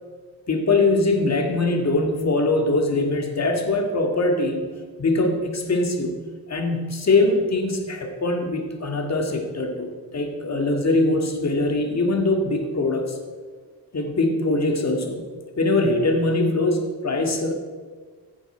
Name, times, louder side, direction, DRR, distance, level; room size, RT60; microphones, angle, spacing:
voice 1, 0.5-4.6 5.0-6.1 6.5-13.2 13.9-17.5, left 2 dB, 40° left, 3 dB, 2.1 m, -22 dB
15.0 x 8.9 x 4.5 m, 1.5 s
cardioid pair, 100°, 39 cm